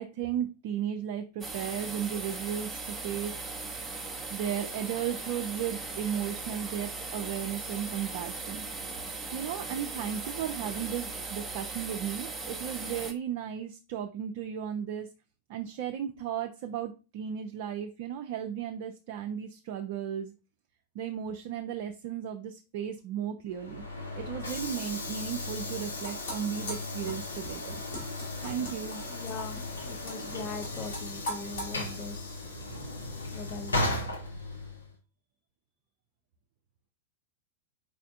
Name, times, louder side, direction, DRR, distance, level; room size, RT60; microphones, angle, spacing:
voice 1, 0.0-3.4 4.3-8.6 9.3-15.1 15.5-20.3 20.9-23.8 24.2-27.8 28.4-29.0, right 9 dB, 50° right, 6 dB, 0.3 m, -35 dB
sound 1, 1.4-13.1, right 3 dB, 10° right, 0.7 m, -38 dB
Train / Sliding door, 23.5-34.9, left 2 dB, 75° left, 0.8 m, -36 dB
sound 2, 25.8-31.7, left 1 dB, 60° left, 2.1 m, -41 dB
voice 2, 29.1-32.4 33.3-34.0, left 4 dB, 35° left, 8 dB, 0.5 m, -41 dB
4.8 x 3.3 x 2.6 m, 0.32 s
figure-of-eight pair, 90°, 0 cm